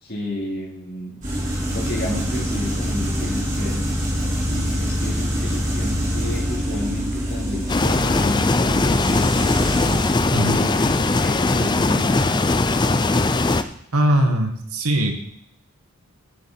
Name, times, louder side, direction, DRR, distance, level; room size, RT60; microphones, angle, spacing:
voice 1, 0.0-1.2 1.7-3.8 4.4-9.5 10.5-12.2, left 1 dB, 45° left, -3 dB, 3.2 m, -31 dB
sound 1, 1.2-10.1, equal, 35° right, 3.6 m, -25 dB
sound 2, 7.7-13.6, left 2 dB, 20° left, 0.5 m, -20 dB
voice 2, 13.9-15.1, right 1 dB, 85° right, 5 dB, 1.7 m, -20 dB
10.0 x 6.9 x 5.8 m, 0.71 s
head